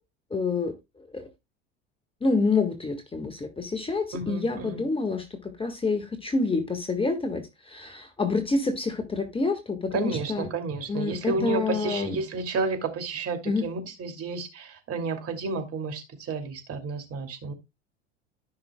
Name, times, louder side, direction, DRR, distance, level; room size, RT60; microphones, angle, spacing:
voice 1, 0.3-1.3 2.2-10.5 10.9-12.2 13.4-13.6, left 3 dB, 15° left, 1.5 m, -28 dB
voice 2, 4.1-4.8 9.9-17.5, right 4 dB, 40° right, 2.5 m, -31 dB
14.0 x 5.9 x 2.2 m
hypercardioid pair, 75°, 35 cm